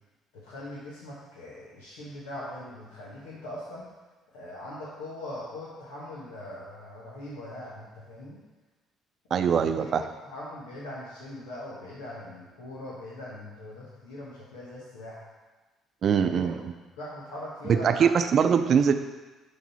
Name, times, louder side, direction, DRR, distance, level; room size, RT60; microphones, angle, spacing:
voice 1, 0.3-3.8 4.3-8.4 9.3-9.9 10.2-15.2 16.2-16.6 17.0-18.1, left 1 dB, 85° left, -7 dB, 1.4 m, -41 dB
voice 2, 9.3-10.0 16.0-16.7 17.7-18.9, right 7 dB, 55° right, 8 dB, 0.6 m, -22 dB
11.5 x 4.0 x 4.2 m, 1.2 s
hypercardioid pair, 55°, 0 cm